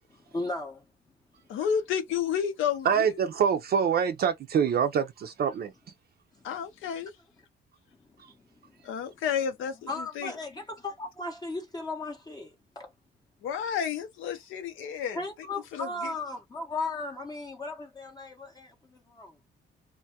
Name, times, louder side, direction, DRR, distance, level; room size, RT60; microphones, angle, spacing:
voice 1, 0.3-0.8 9.9-12.5 12.8-12.9 15.1-18.7 19.1-19.3, left 2 dB, 20° left, 0.6 m, -35 dB
voice 2, 1.5-3.2 6.4-7.1 8.9-10.3 13.4-15.2 15.7-16.1, left 8 dB, 85° left, 0.6 m, -31 dB
voice 3, 2.8-5.7, right 7 dB, 55° right, 0.5 m, -25 dB
2.2 x 2.1 x 2.8 m
cardioid pair, 90°, 20 cm